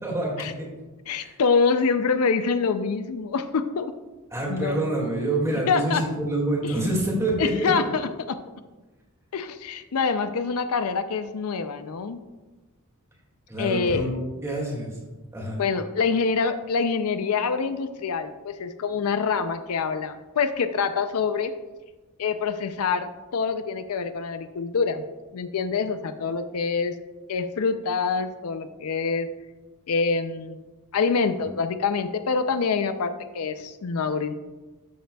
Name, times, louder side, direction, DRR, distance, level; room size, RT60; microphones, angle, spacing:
voice 1, 0.0-0.7 1.2-1.3 4.3-7.9 13.5-14.1 14.4-15.0 15.3-15.6, right 1 dB, 15° right, -2 dB, 2.1 m, -27 dB
voice 2, 1.1-3.9 4.5-4.8 5.7-6.0 6.6-6.7 7.4-8.4 9.3-12.2 13.6-14.0 15.6-21.5 22.2-25.0 25.3-26.9 27.3-29.3 29.9-30.6 30.9-34.3, left 5 dB, 75° left, 10 dB, 0.5 m, -25 dB
13.0 x 6.6 x 2.3 m, 1.2 s
head